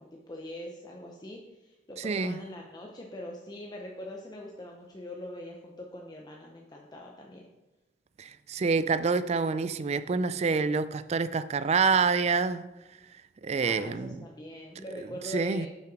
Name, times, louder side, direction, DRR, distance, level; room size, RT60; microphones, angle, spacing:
voice 1, 0.0-7.5 13.6-15.7, left 1 dB, 20° left, 0.7 m, -43 dB
voice 2, 2.0-2.4 8.2-12.7 13.4-14.2 15.3-15.7, right 4 dB, 35° right, 0.3 m, -27 dB
7.7 x 5.7 x 4.7 m
head